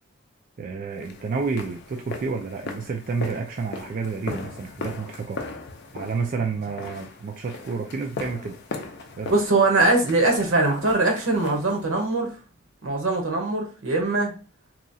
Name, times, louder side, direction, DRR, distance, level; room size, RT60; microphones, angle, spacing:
voice 1, 0.6-5.4 5.9-8.6 9.2-9.3, right 4 dB, 45° right, 0.3 m, -30 dB
sound 1, 1.0-12.1, left 3 dB, 55° left, 0.5 m, -38 dB
voice 2, 9.3-12.3 12.8-14.3, right 2 dB, 80° right, 0.9 m, -22 dB
2.9 x 2.3 x 2.6 m
head